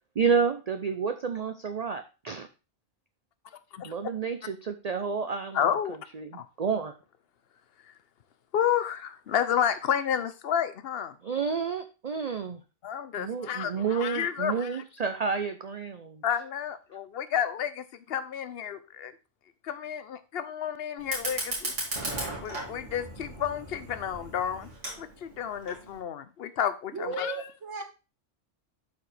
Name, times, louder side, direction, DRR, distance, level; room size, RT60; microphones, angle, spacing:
voice 1, 0.2-2.5 3.8-6.9 11.2-12.6 13.2-16.2, right 5 dB, 45° right, 8 dB, 0.6 m, -30 dB
voice 2, 5.5-6.0 6.3-6.4 8.5-11.1 12.8-14.8 16.2-19.1 19.6-21.7 22.4-24.7 25.0-27.3, left 9 dB, 60° left, 13 dB, 0.9 m, -30 dB
Fire, 21.0-26.0, right 1 dB, 90° right, 2.9 m, -37 dB
voice 3, 26.9-27.8, right 4 dB, 70° right, 3 dB, 1.9 m, -35 dB
11.5 x 4.8 x 3.4 m, 0.31 s
omnidirectional pair, 1.2 m